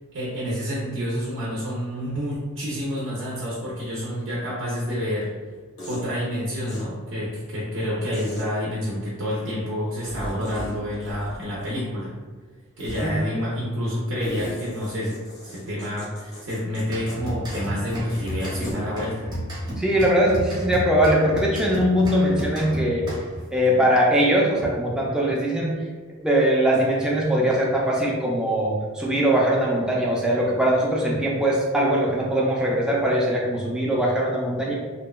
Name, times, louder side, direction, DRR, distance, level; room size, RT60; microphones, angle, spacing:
voice 1, 0.1-5.3 5.9-12.1 12.8-15.2 15.4-19.3, equal, 65° right, -6 dB, 0.5 m, -28 dB
sound 1, 5.8-6.0 6.7-6.8 8.1-8.4 10.0-10.7 11.0-11.9 12.8-13.1 14.2-16.8 17.1-17.2 17.5-17.6 17.9-18.7, left 1 dB, 70° left, 1.0 m, -37 dB
sound 2, 16.9-23.5, equal, 20° right, 0.9 m, -32 dB
voice 2, 19.8-23.0 23.5-25.8 26.2-34.7, right 1 dB, 5° right, -4 dB, 0.4 m, -21 dB
2.8 x 2.1 x 2.2 m, 1.4 s
head